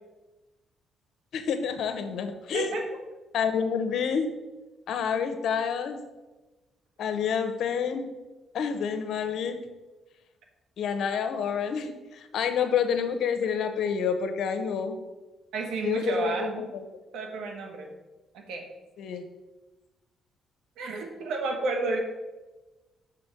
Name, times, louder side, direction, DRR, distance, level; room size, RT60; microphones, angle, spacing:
voice 1, 1.3-2.8 3.3-4.4 4.9-6.0 7.0-8.2 8.5-9.6 10.8-15.0 15.8-16.8 19.0-19.2, left 7 dB, 70° left, 8 dB, 0.9 m, -28 dB
voice 2, 2.5-2.8 15.5-16.7 17.1-17.9 18.3-18.6 20.8-22.0, right 3 dB, 80° right, 3 dB, 1.4 m, -31 dB
6.4 x 5.2 x 6.0 m, 1.1 s
cardioid pair, 90°, 0 cm